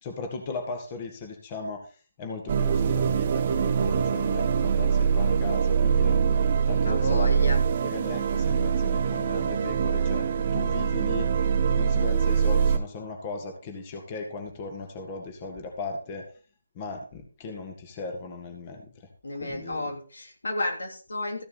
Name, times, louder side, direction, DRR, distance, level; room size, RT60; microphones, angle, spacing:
voice 1, 0.0-1.8 2.2-6.2 6.7-7.5 7.8-16.2 16.8-18.8 19.4-19.9, left 3 dB, 30° left, 3 dB, 2.0 m, -37 dB
sound 1, 2.5-12.8, right 6 dB, 40° right, 0.9 m, -24 dB
voice 2, 6.8-7.6 19.2-21.4, left 1 dB, 70° left, 3 dB, 3.0 m, -32 dB
14.0 x 6.8 x 4.2 m, 0.38 s
figure-of-eight pair, 150°, 0 cm